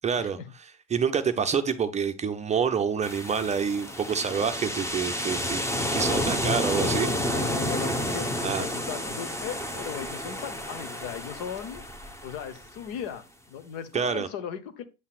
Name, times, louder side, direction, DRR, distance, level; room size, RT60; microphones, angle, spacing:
voice 1, 0.0-5.6 5.9-7.1 8.4-8.6 13.9-14.3, right 6 dB, 20° right, 0.6 m, -27 dB
sound 1, 3.0-12.8, equal, 10° left, 1.0 m, -30 dB
voice 2, 6.7-11.8 12.2-14.8, left 8 dB, 60° left, 1.1 m, -37 dB
8.2 x 5.6 x 2.4 m
hypercardioid pair, 85°, 33 cm